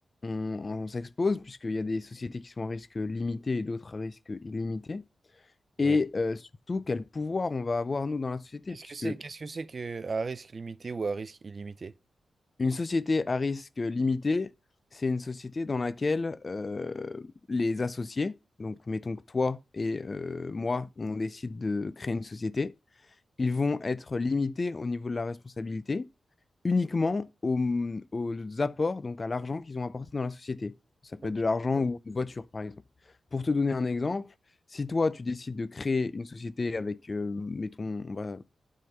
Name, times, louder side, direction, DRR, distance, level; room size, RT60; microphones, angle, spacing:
voice 1, 0.2-5.0 5.8-6.4 6.7-9.2 12.6-14.5 14.9-22.7 23.4-26.1 26.6-30.7 31.1-32.8 33.3-34.3 34.7-38.5, left 3 dB, 40° left, 0.5 m, -30 dB
voice 2, 8.7-11.9 31.2-31.3, right 4 dB, 50° right, 0.5 m, -36 dB
9.4 x 3.9 x 6.6 m
cardioid pair, 70°, 0 cm